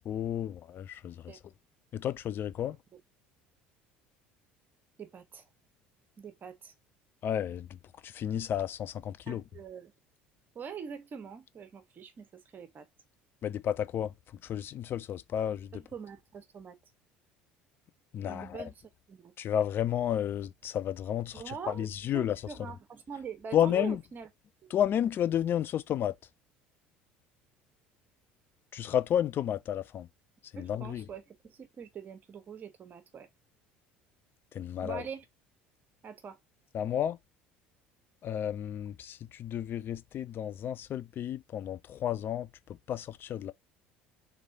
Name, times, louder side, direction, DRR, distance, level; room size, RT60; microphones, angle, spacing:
voice 1, 0.1-1.3 1.9-2.8 7.2-7.7 8.0-9.4 13.4-14.1 14.4-15.7 18.1-18.7 19.4-22.4 23.5-24.0 24.7-26.1 28.7-30.1 30.5-31.0 34.5-35.0 36.7-37.2 38.2-42.5 42.9-43.5, left 10 dB, 45° left, 0.4 m, -31 dB
voice 2, 5.0-5.4 6.2-6.7 9.3-9.9 10.5-12.9 15.7-16.7 18.2-18.7 19.1-19.3 21.3-21.9 22.1-24.3 24.6-24.7 30.6-33.3 34.8-35.2 36.0-36.4, right 7 dB, 40° right, 1.2 m, -44 dB
3.6 x 3.2 x 4.2 m
hypercardioid pair, 70°, 5 cm